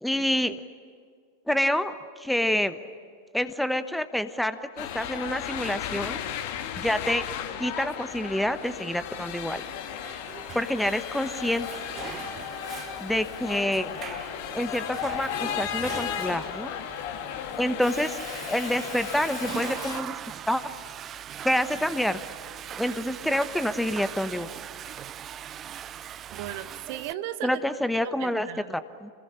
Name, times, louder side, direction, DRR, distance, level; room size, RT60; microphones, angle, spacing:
voice 1, 0.0-0.6 1.5-1.9 2.2-2.8 3.3-6.2 6.8-7.2 7.6-9.6 10.5-11.8 13.0-13.9 14.5-16.7 17.6-18.2 18.5-20.1 20.5-20.6 21.4-22.2 22.8-24.5 27.4-29.1, left 1 dB, ahead, 12 dB, 1.0 m, -27 dB
sound 1, 4.8-20.0, left 9 dB, 50° left, 2.1 m, -35 dB
Water / Toilet flush, 9.7-27.1, right 10 dB, 30° right, 0.7 m, -41 dB
voice 2, 26.3-27.8 28.0-28.7, right 13 dB, 50° right, 12 dB, 1.2 m, -36 dB
27.5 x 20.5 x 10.0 m, 2.1 s
figure-of-eight pair, 90°, 0 cm